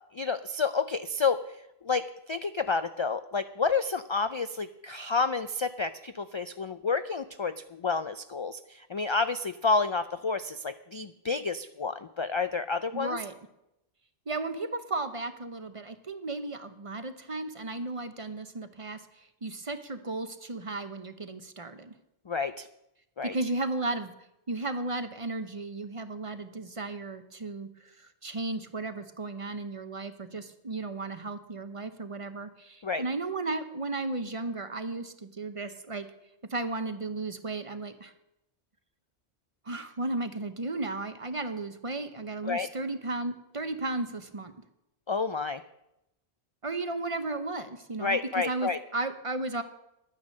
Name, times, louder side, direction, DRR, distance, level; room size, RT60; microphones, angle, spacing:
voice 1, 0.1-1.4 1.8-13.2 22.3-22.7 23.2-23.3 32.8-33.0 42.4-42.7 45.1-45.6 48.0-48.8, left 4 dB, 50° left, 11 dB, 0.3 m, -30 dB
voice 2, 12.9-13.3 14.3-19.0 19.4-21.9 23.2-24.1 24.5-27.9 28.2-36.1 36.5-38.1 39.7-44.5 46.6-49.6, right 2 dB, 35° right, 9 dB, 0.8 m, -34 dB
11.5 x 9.5 x 6.4 m, 0.86 s
omnidirectional pair, 1.0 m